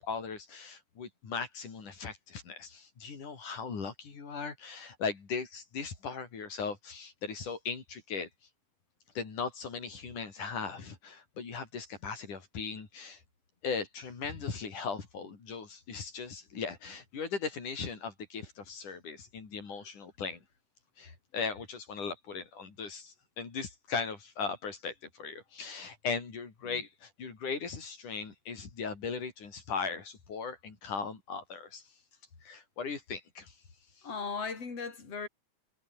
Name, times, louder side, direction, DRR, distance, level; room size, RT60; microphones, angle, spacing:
voice 1, 0.0-8.3 9.2-13.2 13.6-20.4 21.0-31.9 32.4-33.6 34.0-34.1, left 5 dB, 80° left, 5.9 m, -38 dB
voice 2, 34.0-35.3, left 5 dB, 50° left, 6.2 m, -37 dB
omnidirectional pair, 3.5 m